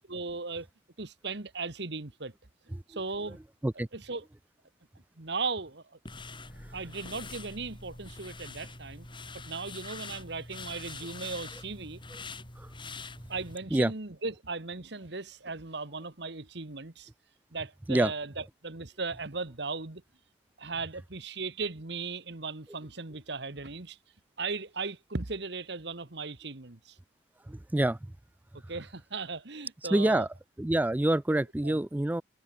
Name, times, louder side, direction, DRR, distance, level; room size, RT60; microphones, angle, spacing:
voice 1, 0.1-0.7 1.0-2.3 2.9-3.4 3.7-4.2 5.2-6.0 6.7-9.1 9.4-12.0 13.3-17.1 17.5-20.0 20.6-24.0 24.4-27.0 28.7-30.3 31.3-31.8, right 4 dB, 60° right, 1.6 m, -37 dB
sound 1, 6.0-13.6, left 3 dB, 25° left, 6.9 m, -44 dB
voice 2, 27.5-28.0 29.9-30.3 30.6-32.2, right 1 dB, 10° right, 0.3 m, -26 dB
head